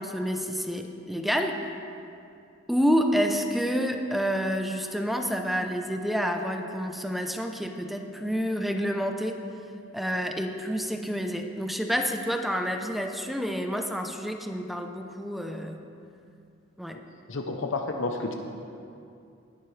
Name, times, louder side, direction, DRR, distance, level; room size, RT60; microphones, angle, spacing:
voice 1, 0.0-1.6 2.7-9.4 9.9-15.8 16.8-17.0, equal, ahead, 4 dB, 0.7 m, -28 dB
voice 2, 17.3-18.3, left 3 dB, 70° left, 3 dB, 0.8 m, -30 dB
19.5 x 11.5 x 3.3 m, 2.6 s
head